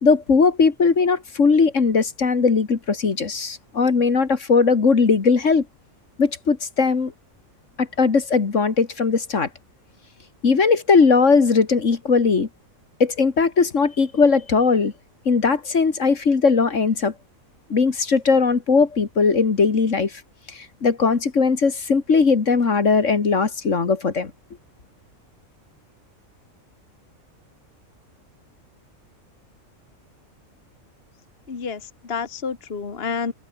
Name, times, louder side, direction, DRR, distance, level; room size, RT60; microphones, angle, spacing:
voice 1, 0.0-5.6 6.2-7.1 7.8-9.5 10.4-12.5 13.0-14.9 15.3-17.1 17.7-20.1 20.8-24.3, left 4 dB, 60° left, 2.2 m, -19 dB
voice 2, 31.5-33.3, left 5 dB, 45° left, 1.9 m, -29 dB
omnidirectional pair, 1.4 m